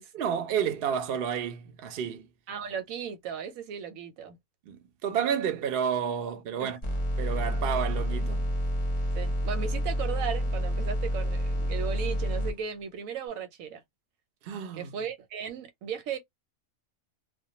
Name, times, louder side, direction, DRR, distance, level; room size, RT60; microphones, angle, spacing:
voice 1, 0.1-2.3 4.7-6.8 7.2-8.5 14.4-14.9, right 8 dB, 60° right, 0.7 m, -30 dB
voice 2, 2.5-4.4 6.6-6.7 9.1-13.8 14.7-16.2, right 7 dB, 90° right, 1.0 m, -36 dB
sound 1, 6.8-12.5, equal, 35° left, 0.5 m, -29 dB
2.2 x 2.2 x 2.8 m
omnidirectional pair, 1.4 m